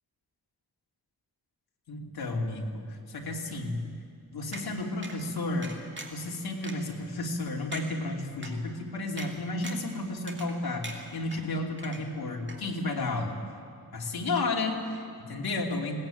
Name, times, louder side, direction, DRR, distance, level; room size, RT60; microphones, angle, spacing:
voice 1, 1.9-3.8 4.3-5.8 6.1-13.4 13.9-16.0, left 2 dB, 75° left, 0 dB, 2.8 m, -32 dB
sound 1, 4.5-4.7 5.0-5.2 5.6-6.2 6.6-6.7 7.3-7.4 7.7-7.9 8.4-8.5 9.2-9.3 9.6-9.9 10.3-10.6 10.8-11.4 11.8-12.2 12.5-12.6, right 3 dB, 30° right, 2.3 m, -41 dB
21.0 x 17.5 x 9.0 m, 2.4 s
wide cardioid pair, 155°, 37 cm